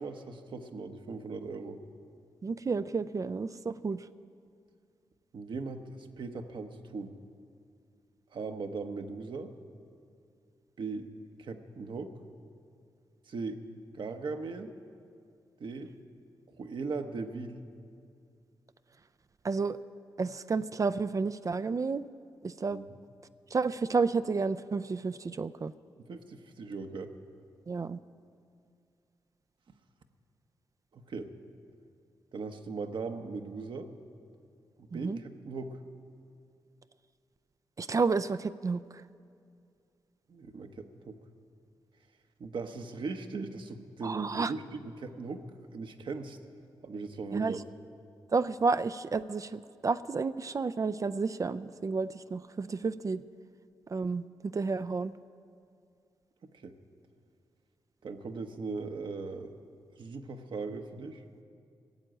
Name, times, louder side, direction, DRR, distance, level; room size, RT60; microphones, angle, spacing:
voice 1, 0.0-1.8 5.3-7.1 8.3-9.5 10.8-11.1 11.4-12.1 13.3-13.6 13.9-14.7 15.6-15.9 16.6-17.6 22.7-22.8 26.1-27.1 30.9-31.3 32.3-33.9 34.8-35.8 40.3-41.2 42.4-45.4 45.7-46.4 46.8-47.6 56.6-56.7 58.0-59.5 60.0-61.2, right 4 dB, 65° right, 6 dB, 1.0 m, -39 dB
voice 2, 2.4-4.0 19.4-19.8 20.2-22.0 22.4-22.8 23.5-25.7 27.7-28.0 34.9-35.2 37.8-38.8 44.0-44.5 47.3-47.6 48.3-53.2 53.9-55.1, right 4 dB, 40° right, 13 dB, 0.4 m, -31 dB
16.0 x 7.5 x 9.1 m, 2.3 s
cardioid pair, 50°, 9 cm